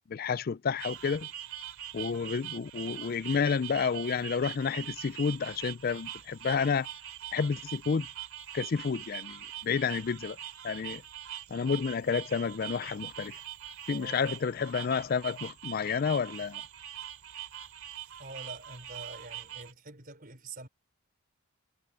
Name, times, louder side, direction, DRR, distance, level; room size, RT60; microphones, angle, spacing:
voice 1, 0.1-1.3 1.9-6.9 7.3-8.1 8.5-10.4 10.6-11.0 11.5-13.4 13.9-16.6, left 5 dB, 45° left, 0.4 m, -30 dB
sound 1, 0.8-19.7, right 11 dB, 80° right, 3.1 m, -43 dB
voice 2, 13.9-14.2 18.2-20.7, right 2 dB, 40° right, 5.1 m, -46 dB
head